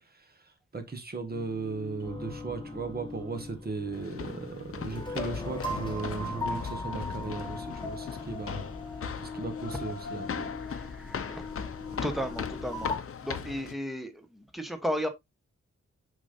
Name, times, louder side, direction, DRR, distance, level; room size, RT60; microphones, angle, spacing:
voice 1, 0.7-8.7 9.2-10.5, right 4 dB, 35° right, 1.3 m, -37 dB
sound 1, 1.3-13.0, left 2 dB, 15° left, 1.3 m, -39 dB
sound 2, 3.9-13.7, left 6 dB, 50° left, 0.6 m, -39 dB
voice 2, 10.7-11.4 11.8-12.9 13.2-15.1, equal, ahead, 1.0 m, -34 dB
6.9 x 5.5 x 2.6 m
wide cardioid pair, 175°, 29 cm